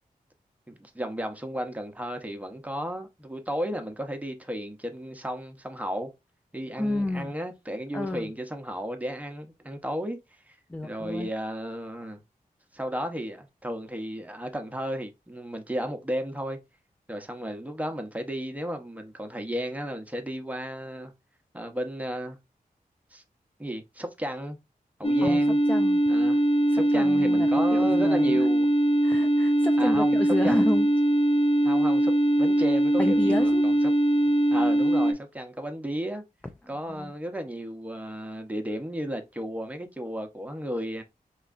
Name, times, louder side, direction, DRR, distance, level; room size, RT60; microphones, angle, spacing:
voice 1, 0.7-6.1 6.5-10.2 10.5-10.6 10.8-12.2 12.7-16.6 17.1-21.1 21.5-22.4 23.1-23.2 23.6-24.6 25.0-25.6 26.1-26.4 26.7-28.7 29.8-30.2 30.4-30.7 31.6-32.1 32.4-33.7 34.2-36.2 36.7-41.0, equal, 10° right, 0.7 m, -33 dB
voice 2, 6.8-7.3 7.9-8.3 10.7-11.3 25.2-26.0 26.7-28.5 29.0-30.9 33.0-33.6 36.9-37.1, left 1 dB, 10° left, 0.3 m, -31 dB
sound 1, 25.0-35.1, right 1 dB, 40° left, 0.8 m, -22 dB
4.4 x 3.0 x 2.4 m
wide cardioid pair, 105°, 15 cm